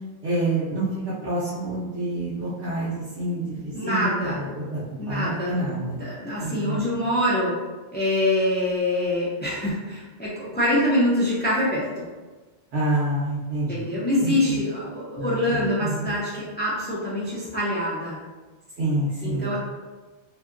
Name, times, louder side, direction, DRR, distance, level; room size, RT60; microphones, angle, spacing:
voice 1, 0.2-0.9 1.2-6.0 6.4-6.8 12.7-13.8 14.2-14.6 15.1-16.2 18.8-19.5, right 2 dB, 85° right, -10 dB, 1.0 m, -28 dB
voice 2, 3.7-4.4 5.0-5.5 6.0-7.5 7.9-12.1 13.7-18.2 19.2-19.6, left 1 dB, 15° left, -8 dB, 0.4 m, -25 dB
2.7 x 2.7 x 2.5 m, 1.3 s
omnidirectional pair, 1.1 m